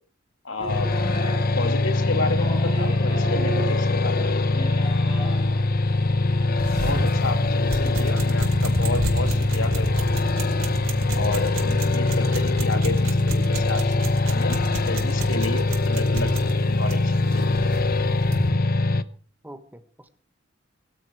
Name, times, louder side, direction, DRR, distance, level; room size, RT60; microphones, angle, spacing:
voice 1, 0.4-0.9 1.6-4.5 6.1-6.2 6.7-10.2 11.1-14.6 14.8-17.7, left 3 dB, 70° left, 7 dB, 2.5 m, -31 dB
sound 1, 0.6-12.4, right 1 dB, 25° left, 4.4 m, -37 dB
sound 2, 0.7-19.0, left 2 dB, 45° left, 0.9 m, -22 dB
sound 3, 6.6-18.5, right 1 dB, 90° right, 4.9 m, -31 dB
voice 2, 6.8-8.1 19.4-20.2, right 1 dB, 10° right, 9 dB, 1.2 m, -45 dB
24.0 x 12.5 x 4.7 m, 0.42 s
head